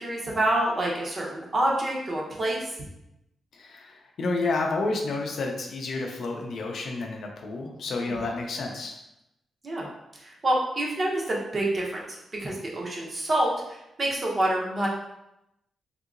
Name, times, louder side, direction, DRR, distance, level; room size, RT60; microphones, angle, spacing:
voice 1, 0.0-2.7 8.2-8.3 9.6-9.9 10.2-14.9, right 1 dB, 35° right, -2 dB, 0.7 m, -27 dB
voice 2, 3.5-9.0, left 3 dB, 60° left, 2 dB, 0.5 m, -30 dB
3.6 x 2.8 x 2.5 m, 0.86 s
wide cardioid pair, 145°, 0 cm